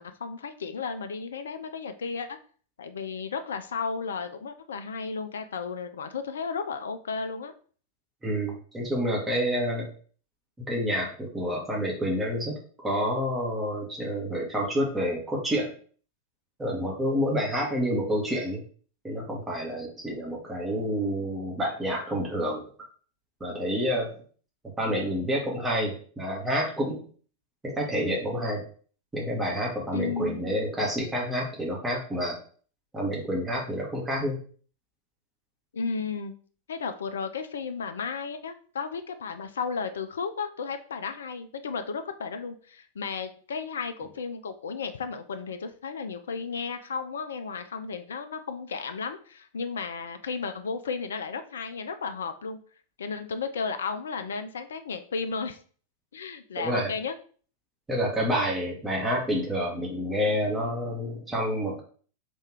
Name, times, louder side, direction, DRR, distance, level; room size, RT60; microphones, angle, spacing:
voice 1, 0.0-2.4 2.8-7.5 29.9-30.4 35.7-36.3 36.7-52.6 53.0-55.6 56.1-57.1, left 5 dB, 65° left, 8 dB, 0.4 m, -34 dB
voice 2, 8.2-9.9 10.6-15.7 16.6-18.6 19.0-22.7 23.4-24.2 24.8-27.0 27.6-28.7 29.1-32.4 32.9-34.4 56.6-56.9 57.9-61.8, equal, 10° right, -3 dB, 1.3 m, -28 dB
3.4 x 2.8 x 4.6 m, 0.44 s
figure-of-eight pair, 90°, 0 cm